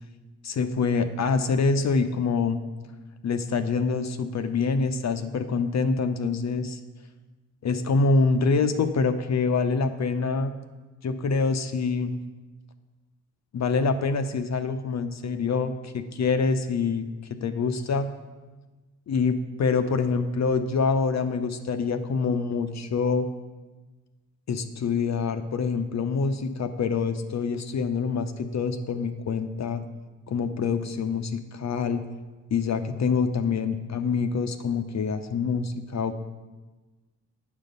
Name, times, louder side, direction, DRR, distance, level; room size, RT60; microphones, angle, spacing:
voice 1, 0.4-2.6 3.2-6.8 7.6-10.6 11.0-12.2 13.5-18.1 19.1-23.3 24.5-29.8 30.3-32.0 32.5-36.1, left 4 dB, 45° left, 8 dB, 0.7 m, -26 dB
9.0 x 5.2 x 5.3 m, 1.2 s
hypercardioid pair, 45°, 37 cm